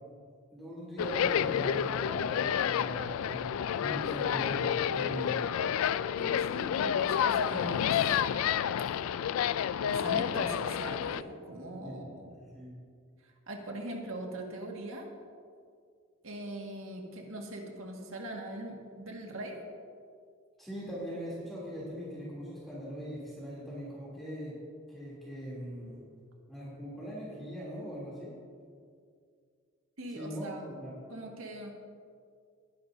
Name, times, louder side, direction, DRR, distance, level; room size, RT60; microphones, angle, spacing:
voice 1, 0.5-3.4 3.8-5.5 5.8-5.9 11.8-12.0 12.4-12.7 20.6-24.6 24.9-26.1 26.5-28.3 30.1-30.5 30.8-30.9, equal, ahead, -8 dB, 2.9 m, -40 dB
sound 1, 1.0-11.2, left 9 dB, 90° left, 0.3 m, -30 dB
voice 2, 6.2-8.2 9.9-12.3 13.2-15.1 16.2-19.6 30.0-30.7 31.1-31.7, right 1 dB, 85° right, 1 dB, 1.8 m, -41 dB
20.0 x 10.5 x 2.7 m, 2.2 s
head